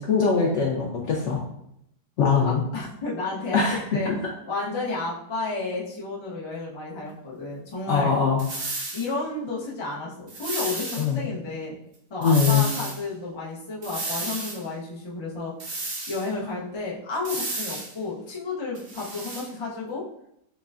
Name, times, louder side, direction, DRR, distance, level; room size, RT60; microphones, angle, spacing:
voice 1, 0.0-1.4 2.2-2.6 3.5-3.8 4.1-4.2 7.9-8.5 11.0-11.3 12.2-12.6, left 5 dB, 70° left, -1 dB, 0.7 m, -22 dB
voice 2, 2.4-4.1 4.5-8.1 8.9-11.8 12.1-15.5 16.1-20.0, left 3 dB, 35° left, -6 dB, 0.4 m, -32 dB
sound 1, 8.4-9.1 10.3-11.1 12.2-13.0 13.8-14.6 15.6-16.3 17.2-17.9 18.7-19.5, right 2 dB, 50° right, 0.8 m, -32 dB
5.7 x 2.1 x 2.4 m, 0.77 s
omnidirectional pair, 1.8 m